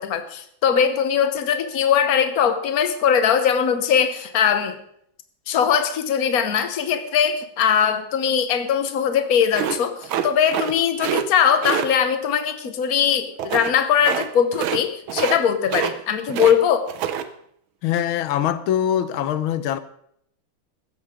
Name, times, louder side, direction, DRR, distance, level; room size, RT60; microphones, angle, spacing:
voice 1, 0.0-4.8 5.5-16.9, left 8 dB, 50° left, 1.5 m, -20 dB
sound 1, 9.5-10.7 11.0-11.2 11.6-11.9 13.4-13.7 14.0-14.3 14.5-14.8 15.1-15.4 15.7-16.6 16.9-17.2, right 10 dB, 80° right, 1.7 m, -26 dB
voice 2, 17.8-19.8, left 10 dB, 85° left, 1.6 m, -23 dB
15.5 x 13.5 x 3.7 m
omnidirectional pair, 2.2 m